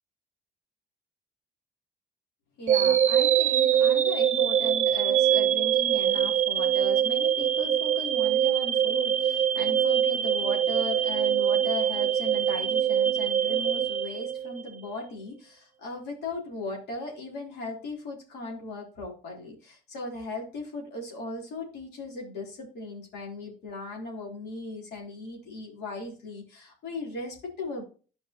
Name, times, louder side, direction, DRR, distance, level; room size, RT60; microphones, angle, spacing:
voice 1, 2.6-27.8, left 2 dB, 75° left, -1 dB, 3.4 m, -37 dB
sound 1, 2.7-14.8, right 9 dB, 45° right, 0.7 m, -24 dB
10.5 x 5.2 x 2.9 m, 0.36 s
cardioid pair, 110°, 17 cm